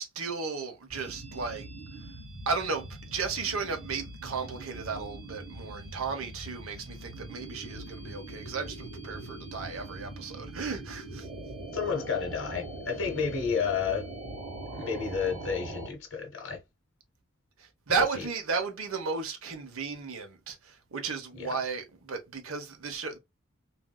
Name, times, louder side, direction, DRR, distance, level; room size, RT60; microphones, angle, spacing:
voice 1, 0.0-1.7 2.5-11.3 17.6-23.2, right 5 dB, 85° right, 0.9 m, -34 dB
sound 1, 0.9-15.9, right 2 dB, 35° right, 1.1 m, -42 dB
voice 2, 11.7-14.1 14.7-16.6 21.4-21.5, left 6 dB, 60° left, 1.0 m, -31 dB
3.7 x 2.6 x 2.2 m
head